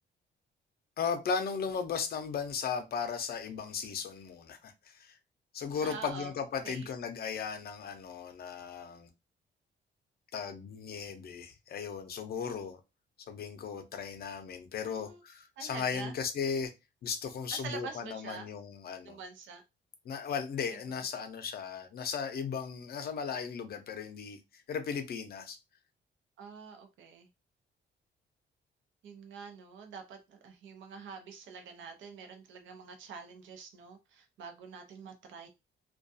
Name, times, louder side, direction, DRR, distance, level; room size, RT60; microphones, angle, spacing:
voice 1, 1.0-5.2 5.5-9.1 10.3-12.8 13.3-16.7 17.0-19.2 20.0-25.6, left 6 dB, 55° left, 0.5 m, -36 dB
voice 2, 5.8-6.3 6.6-6.9 14.8-15.2 15.6-16.1 17.5-18.5 19.0-19.6 26.4-27.3 29.0-35.5, right 5 dB, 85° right, 0.6 m, -46 dB
2.3 x 2.3 x 2.6 m
cardioid pair, 115°, 19 cm